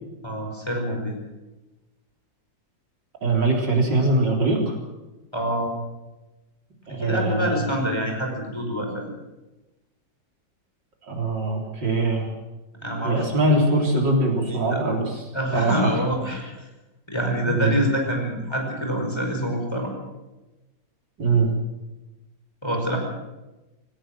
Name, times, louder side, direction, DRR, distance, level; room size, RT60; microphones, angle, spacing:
voice 1, 0.2-1.2 5.3-5.7 6.9-9.1 12.8-13.3 14.5-14.8 15.3-16.7 17.1-19.9 22.6-23.0, equal, 15° left, 1 dB, 5.2 m, -26 dB
voice 2, 3.2-4.8 6.9-7.6 11.1-12.3 13.0-15.1 15.5-15.9 17.5-17.8 21.2-21.5, right 2 dB, 75° right, 1 dB, 4.4 m, -22 dB
19.5 x 18.0 x 7.6 m, 1.0 s
omnidirectional pair, 2.0 m